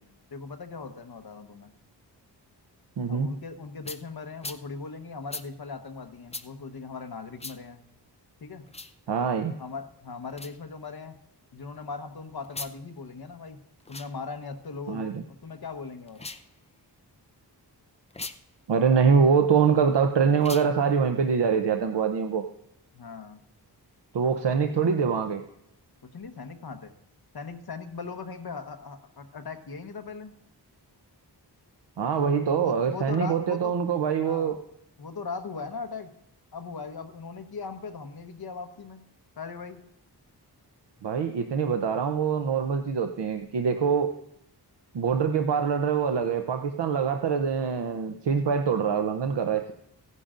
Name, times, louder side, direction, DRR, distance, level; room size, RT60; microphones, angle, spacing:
voice 1, 0.3-1.7 3.1-7.8 8.4-8.7 9.6-11.1 11.5-13.6 13.9-16.2 22.9-23.4 26.1-26.9 27.3-30.3 32.3-33.8 34.2-34.5 35.0-36.1 36.5-39.0 39.4-39.8, left 4 dB, 65° left, 6 dB, 1.1 m, -39 dB
voice 2, 3.0-3.3 9.1-9.5 14.9-15.2 18.7-22.5 24.1-25.4 32.0-34.6 41.0-44.1 44.9-49.7, right 6 dB, 90° right, 7 dB, 0.7 m, -24 dB
sound 1, 3.8-4.0 4.4-4.6 5.3-5.5 6.3-6.5 7.4-7.6 8.7-8.9 10.3-10.6 12.4-12.8 13.8-14.1 16.1-16.5 18.1-18.4 20.4-20.7, left 3 dB, 15° left, 0.5 m, -38 dB
16.0 x 10.5 x 2.5 m, 0.81 s
wide cardioid pair, 125°, 41 cm